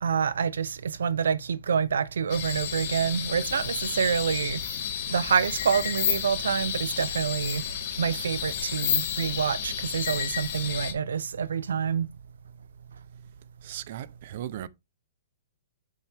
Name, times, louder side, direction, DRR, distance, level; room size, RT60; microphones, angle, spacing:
voice 1, 0.0-4.6 5.1-7.6 8.0-12.1, right 7 dB, 90° right, 0.5 m, -27 dB
sound 1, 2.3-10.9, left 8 dB, 45° left, 2.3 m, -31 dB
voice 2, 13.6-14.7, right 11 dB, 45° right, 0.6 m, -37 dB
7.4 x 5.7 x 3.4 m
hypercardioid pair, 165°, 0 cm